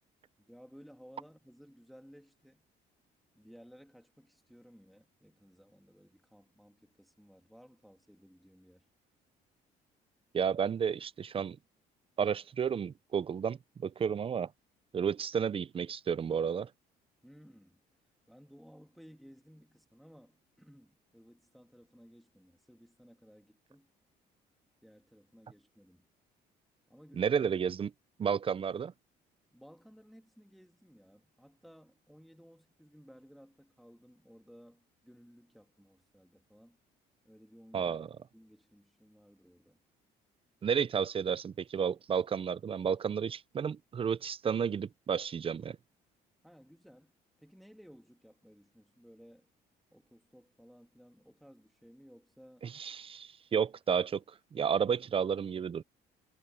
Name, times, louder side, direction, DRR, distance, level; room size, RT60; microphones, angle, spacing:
voice 1, 0.4-2.6 3.3-8.9 17.2-17.8 18.3-23.9 24.8-26.1 26.9-27.4 29.5-36.8 37.2-38.0 38.3-39.8 46.4-49.5 49.9-52.7, equal, ahead, 3.0 m, -58 dB
voice 2, 10.3-11.6 12.2-14.5 14.9-16.7 27.2-27.9 28.2-28.9 37.7-38.1 40.6-45.8 52.6-54.2 54.5-55.8, right 7 dB, 35° right, 0.6 m, -32 dB
cardioid pair, 110°, 17 cm